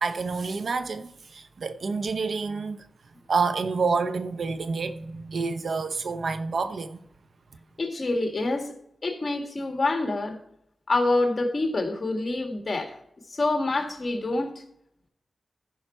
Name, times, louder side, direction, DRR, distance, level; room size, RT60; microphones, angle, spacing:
voice 1, 0.0-2.8 3.3-7.0, right 4 dB, 75° right, 0.8 m, -28 dB
voice 2, 7.8-8.8 9.0-10.4 10.9-13.0 13.3-14.6, left 2 dB, 45° left, 1.9 m, -26 dB
14.0 x 5.6 x 4.4 m
wide cardioid pair, 75°, 0 cm